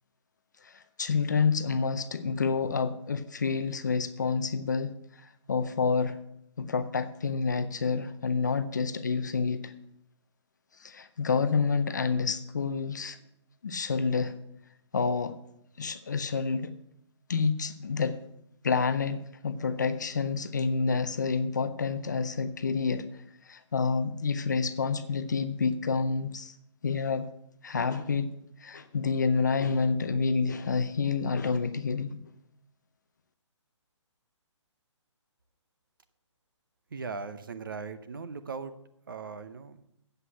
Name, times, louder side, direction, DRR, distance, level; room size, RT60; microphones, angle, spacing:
voice 1, 0.6-4.9 5.2-6.2 6.6-9.7 10.8-13.2 13.6-14.3 14.9-15.4 15.8-16.7 17.3-18.2 18.6-23.0 23.5-26.5 26.8-27.3 27.6-28.3 28.6-32.2, left 5 dB, 35° left, 12 dB, 0.5 m, -28 dB
voice 2, 36.9-38.7 39.1-39.8, right 5 dB, 45° right, 11 dB, 0.8 m, -38 dB
8.1 x 7.9 x 8.1 m, 0.78 s
hypercardioid pair, 180°, 16 cm